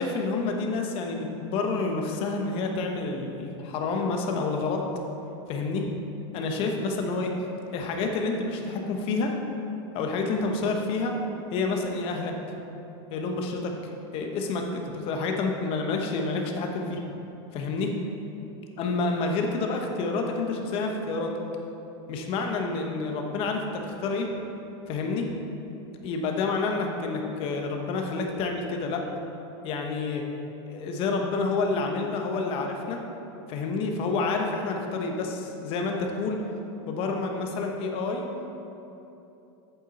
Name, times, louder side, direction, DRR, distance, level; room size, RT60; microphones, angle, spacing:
voice 1, 0.0-4.8 5.5-5.8 6.3-7.3 7.7-9.3 9.9-11.2 11.5-12.3 13.1-13.7 14.1-17.0 17.5-17.9 18.8-21.3 22.1-24.3 24.9-25.3 26.0-29.0 29.6-30.2 30.7-33.0 33.5-36.4 36.9-38.3, left 3 dB, 40° left, 2 dB, 1.0 m, -28 dB
8.2 x 7.3 x 4.2 m, 3.0 s
supercardioid pair, 145°, 14 cm